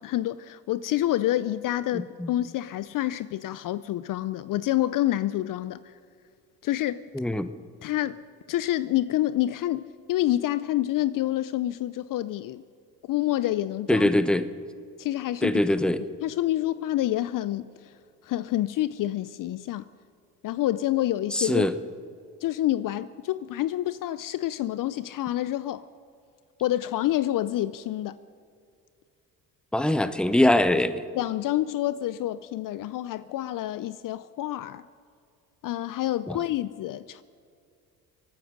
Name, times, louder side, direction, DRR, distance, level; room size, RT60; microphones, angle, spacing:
voice 1, 0.0-5.9 6.6-7.1 7.8-8.2 8.5-12.6 13.1-14.1 15.0-15.6 16.2-17.9 18.2-19.8 20.4-21.7 22.4-25.9 26.6-28.2 31.1-34.9 35.6-37.2, left 14 dB, 55° left, 0.5 m, -28 dB
voice 2, 1.9-2.3 7.1-7.5 13.9-14.4 15.4-16.0 21.3-21.7 29.7-31.0 36.3-36.4, left 1 dB, ahead, 0.9 m, -23 dB
24.0 x 9.6 x 5.2 m
hypercardioid pair, 60°, 41 cm